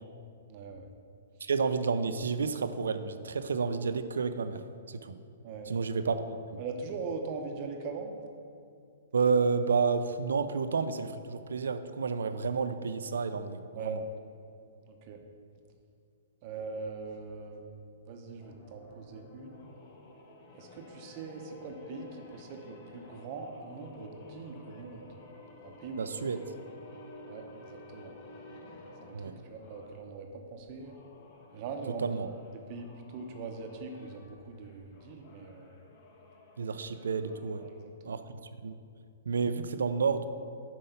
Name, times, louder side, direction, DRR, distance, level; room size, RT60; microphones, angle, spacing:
voice 1, 0.5-0.9 5.4-5.7 6.6-8.1 13.7-14.0 14.9-15.2 16.4-19.6 20.5-25.0 25.6-26.2 27.3-28.1 29.0-30.9 31.5-32.2 32.5-35.7 37.6-37.7 38.0-38.2, right 4 dB, 40° right, 3 dB, 0.8 m, -41 dB
voice 2, 1.4-4.6 4.9-5.2 5.7-6.6 9.1-14.0 26.0-26.4 29.1-29.4 32.0-32.3 36.6-37.6 38.1-38.2 38.6-38.7 39.3-40.2, right 5 dB, 90° right, 10 dB, 0.4 m, -30 dB
sound 1, 18.4-30.1 30.7-37.9, left 2 dB, 45° left, 1.2 m, -52 dB
5.7 x 5.3 x 6.7 m, 2.5 s
hypercardioid pair, 145°, 0 cm